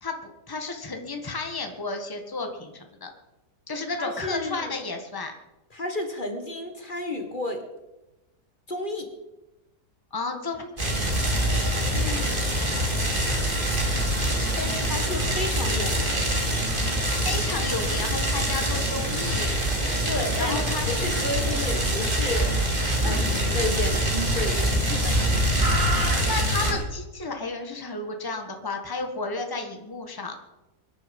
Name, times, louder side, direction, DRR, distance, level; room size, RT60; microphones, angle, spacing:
voice 1, 0.0-3.1 3.7-5.3 10.1-10.8 11.4-11.5 11.9-12.3 14.4-14.6 17.2-19.5 20.4-20.9 26.2-30.3, left 3 dB, 15° left, 4 dB, 1.6 m, -32 dB
voice 2, 4.0-4.7 5.7-7.6 8.7-9.1 14.6-16.4 20.1-20.6 20.8-25.2, left 1 dB, 30° left, 5 dB, 1.9 m, -32 dB
sound 1, 10.8-26.7, right 1 dB, 30° right, 3.3 m, -24 dB
23.5 x 11.0 x 5.4 m, 1.0 s
omnidirectional pair, 1.8 m